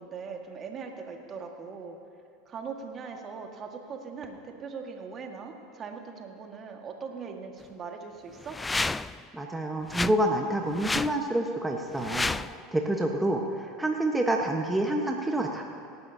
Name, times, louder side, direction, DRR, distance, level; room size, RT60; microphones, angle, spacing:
voice 1, 0.0-2.0 2.5-8.6, right 5 dB, 35° right, 3 dB, 1.8 m, -40 dB
sound 1, 8.4-9.2 9.9-10.2 10.7-11.2 12.0-12.6, left 3 dB, 15° left, 0.3 m, -30 dB
voice 2, 9.3-15.6, right 1 dB, 10° right, 1 dB, 1.2 m, -28 dB
26.5 x 11.0 x 2.8 m, 2.5 s
hypercardioid pair, 80°, 0 cm